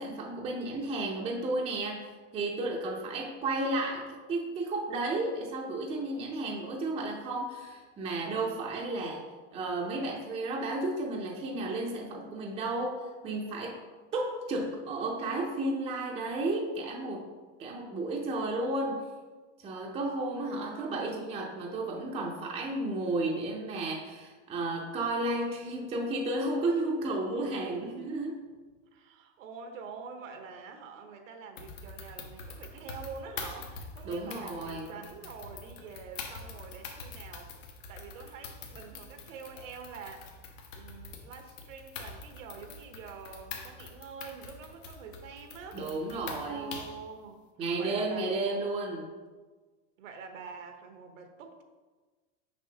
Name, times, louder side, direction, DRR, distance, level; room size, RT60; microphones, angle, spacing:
voice 1, 0.0-9.3 9.5-13.8 14.1-17.3 17.6-19.1 19.6-28.4 34.0-35.0 45.7-46.8 47.6-49.1, right 2 dB, 15° right, -1 dB, 0.5 m, -33 dB
voice 2, 20.5-21.0 27.4-28.2 28.9-37.6 37.9-40.4 40.7-45.8 46.4-47.4 47.8-48.6 50.0-51.6, right 5 dB, 90° right, 5 dB, 1.1 m, -46 dB
sound 1, 31.6-47.0, left 4 dB, 80° left, 1.3 m, -44 dB
6.1 x 5.8 x 2.9 m, 1.3 s
supercardioid pair, 145°, 38 cm